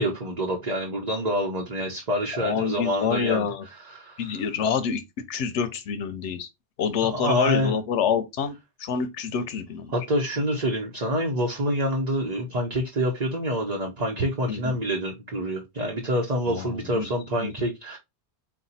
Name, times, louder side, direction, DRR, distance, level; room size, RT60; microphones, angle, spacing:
voice 1, 0.0-4.4 7.0-7.8 9.9-18.0, equal, 40° right, 0.8 m, -27 dB
voice 2, 2.3-3.6 4.2-5.0 5.3-6.5 6.8-8.5 8.8-10.0 14.5-14.7 16.5-17.1 17.4-17.5, left 7 dB, 85° left, 0.9 m, -27 dB
4.2 x 2.3 x 4.0 m
omnidirectional pair, 1.2 m